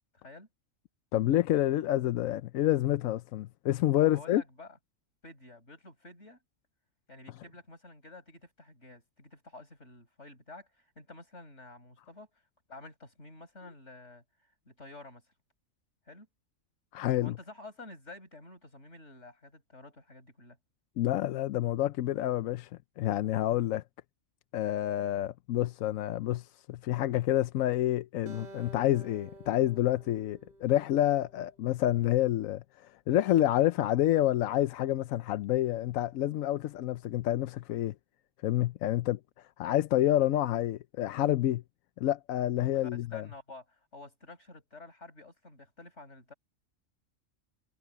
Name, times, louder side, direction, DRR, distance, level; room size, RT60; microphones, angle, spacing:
voice 1, 0.1-0.5 4.0-4.8 5.2-6.4 7.1-12.3 12.7-14.2 14.6-15.2 16.1-16.3 17.2-20.6 42.6-46.3, left 2 dB, 60° left, 6.8 m, -50 dB
voice 2, 1.1-4.4 16.9-17.4 21.0-22.7 23.0-23.8 24.5-37.9 38.4-41.6 42.0-43.3, left 13 dB, 90° left, 1.0 m, -28 dB
Acoustic guitar, 28.3-31.6, right 2 dB, 35° right, 1.0 m, -51 dB
omnidirectional pair, 1.4 m